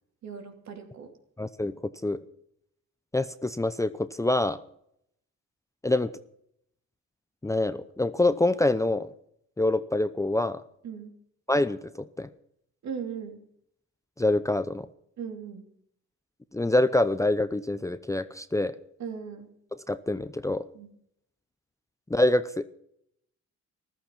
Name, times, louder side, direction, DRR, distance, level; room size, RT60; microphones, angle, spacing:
voice 1, 0.2-1.1 10.8-11.1 12.8-13.4 15.2-15.6 19.0-19.5 20.7-20.9, right 6 dB, 65° right, 5 dB, 3.2 m, -38 dB
voice 2, 1.4-1.7 2.0-2.2 3.1-4.6 5.8-6.1 7.4-9.1 9.6-10.6 11.5-12.3 14.2-14.9 16.5-18.7 19.9-20.7 22.1-22.7, left 2 dB, 10° left, 13 dB, 0.6 m, -25 dB
14.5 x 13.0 x 5.9 m, 0.72 s
cardioid pair, 90°, 30 cm